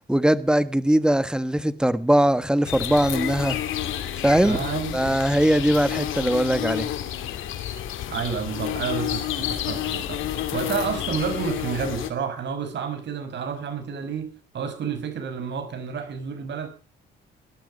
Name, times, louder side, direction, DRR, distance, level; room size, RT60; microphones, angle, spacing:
voice 1, 0.1-3.6 4.2-4.6 4.9-6.9, right 1 dB, 5° right, 1.5 m, -20 dB
sound 1, 2.6-12.1, left 11 dB, 85° left, 2.6 m, -30 dB
voice 2, 4.4-5.1 8.1-16.7, right 6 dB, 65° right, 5.9 m, -30 dB
18.0 x 13.0 x 5.4 m
cardioid pair, 90°, 20 cm